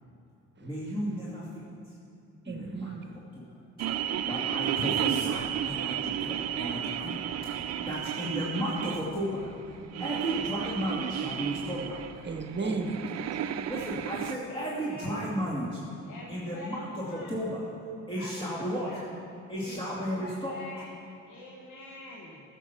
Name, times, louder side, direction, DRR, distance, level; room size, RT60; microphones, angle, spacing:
voice 1, 0.6-1.9 2.5-3.0 3.3-3.5 3.9-12.2 12.6-12.8 13.7-15.8 16.3-17.7 18.1-18.9 19.5-20.6, equal, 15° left, -7 dB, 2.4 m, -34 dB
voice 2, 2.4-3.0 7.6-7.7 10.0-10.1 12.2-13.4, right 3 dB, 35° right, 5 dB, 1.1 m, -35 dB
sound 1, 3.8-14.4, right 10 dB, 60° right, 0.6 m, -33 dB
voice 3, 14.5-15.3 16.0-17.4 18.1-19.1 19.6-20.8 21.3-22.4, left 1 dB, 80° left, -4 dB, 1.7 m, -45 dB
14.5 x 7.5 x 5.8 m, 2.6 s
cardioid pair, 90°, 30 cm